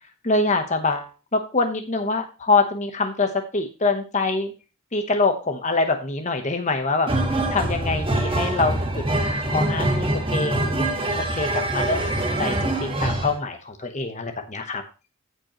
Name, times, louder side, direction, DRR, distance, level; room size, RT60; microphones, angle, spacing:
voice 1, 0.2-4.5 4.9-7.1 7.5-10.8 11.1-14.8, left 3 dB, 35° left, 6 dB, 1.0 m, -25 dB
sound 1, 7.1-13.4, right 1 dB, 25° right, 1.6 m, -24 dB
15.5 x 5.3 x 3.0 m, 0.31 s
head